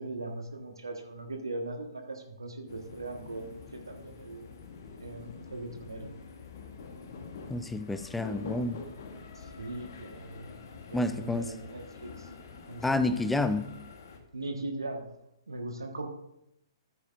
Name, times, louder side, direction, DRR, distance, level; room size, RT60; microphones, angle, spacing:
voice 1, 0.0-4.5 5.0-6.1 9.3-10.6 10.9-12.3 12.7-13.1 14.3-15.0 15.5-16.1, right 2 dB, 70° right, 4 dB, 1.3 m, -39 dB
sound 1, 2.7-14.2, left 4 dB, 50° left, 1.3 m, -46 dB
voice 2, 7.5-8.8 10.9-11.5 12.8-13.7, left 2 dB, 5° left, 12 dB, 0.5 m, -29 dB
14.0 x 9.2 x 2.5 m, 0.82 s
figure-of-eight pair, 120°, 2 cm